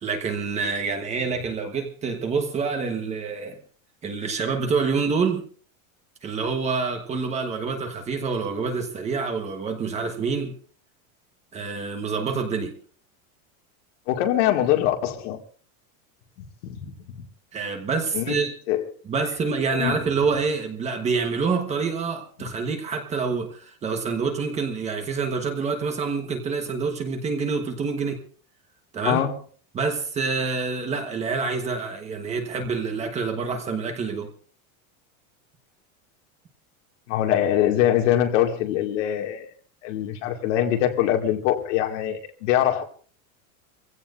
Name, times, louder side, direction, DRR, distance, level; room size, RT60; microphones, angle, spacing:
voice 1, 0.0-3.6 4.0-5.5 6.2-10.5 11.5-12.8 17.5-18.5 19.0-28.2 28.9-29.2 29.7-34.3, right 5 dB, 15° right, 1.3 m, -27 dB
voice 2, 14.1-15.4 16.6-17.2 18.1-18.8 19.7-20.0 29.0-29.4 37.1-39.5 39.8-42.8, left 11 dB, 60° left, 2.3 m, -23 dB
24.5 x 16.0 x 2.6 m
supercardioid pair, 175°, 41 cm